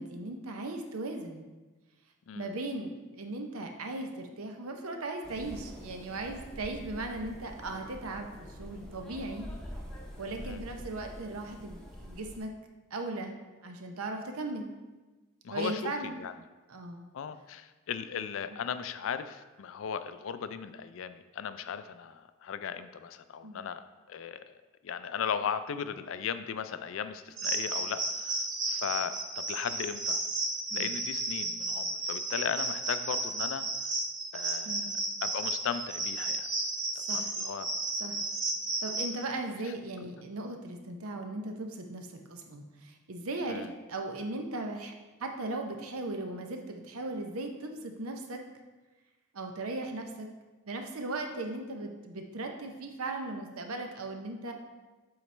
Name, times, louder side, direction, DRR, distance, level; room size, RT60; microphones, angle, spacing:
voice 1, 0.0-1.5 2.3-9.5 10.2-12.5 12.9-13.4 13.6-14.7 15.5-16.1 16.7-17.1 23.4-23.7 30.7-31.0 34.6-35.1 36.9-37.3 38.0-38.2 38.8-44.9 45.2-48.4 49.3-50.3 50.7-54.5, right 2 dB, 90° right, 4 dB, 0.8 m, -38 dB
sound 1, 5.2-12.4, equal, 5° left, 0.7 m, -45 dB
voice 2, 15.4-16.3 17.1-23.8 24.1-24.4 24.8-30.2 30.7-33.7 34.3-34.9 35.2-36.5 37.1-37.7 43.5-43.7, left 7 dB, 70° left, 11 dB, 0.3 m, -37 dB
sound 2, 27.4-39.1, right 2 dB, 35° right, 0.9 m, -33 dB
7.9 x 4.1 x 3.3 m, 1.2 s
head